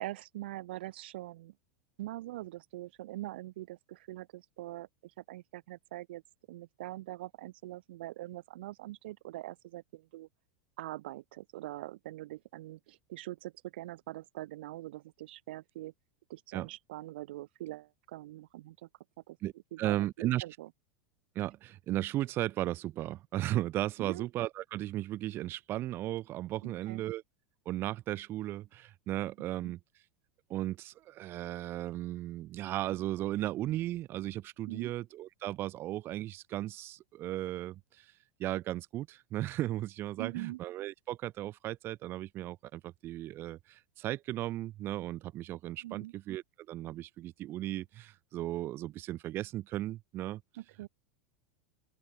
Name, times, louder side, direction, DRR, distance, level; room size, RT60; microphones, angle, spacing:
voice 1, 0.0-1.5 2.0-6.2 6.5-10.3 10.8-15.9 16.3-18.9 19.3-19.4 19.7-20.7 24.0-24.3 26.6-27.0 29.6-29.7 34.7-34.9 40.2-40.6 45.8-46.1 50.6-50.9, right 16 dB, 55° right, 2.1 m, -43 dB
voice 2, 19.8-20.4 21.3-27.2 27.6-30.0 30.5-50.4, right 14 dB, 35° right, 1.4 m, -36 dB
open air
figure-of-eight pair, 85°, 6 cm